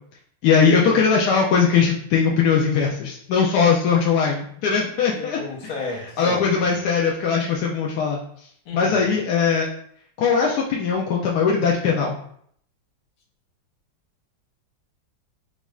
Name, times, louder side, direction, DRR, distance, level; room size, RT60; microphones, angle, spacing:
voice 1, 0.4-5.4 6.2-8.2 8.7-9.7 10.2-12.2, left 6 dB, 75° left, -2 dB, 0.9 m, -20 dB
voice 2, 5.1-6.8 8.6-9.1, left 3 dB, 60° left, -1 dB, 1.2 m, -33 dB
6.0 x 2.4 x 2.3 m, 0.65 s
omnidirectional pair, 2.2 m